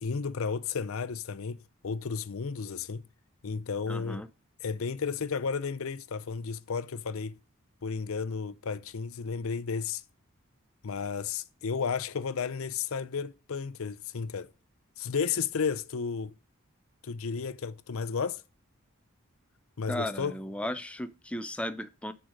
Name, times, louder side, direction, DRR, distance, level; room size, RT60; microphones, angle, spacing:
voice 1, 0.0-3.0 3.4-4.2 4.6-7.4 7.8-10.0 10.8-14.5 15.0-16.3 17.0-18.4 19.8-20.3, left 5 dB, 70° left, 0.5 m, -33 dB
voice 2, 3.9-4.3 19.9-22.1, left 1 dB, 5° left, 0.5 m, -35 dB
10.0 x 4.7 x 5.1 m
head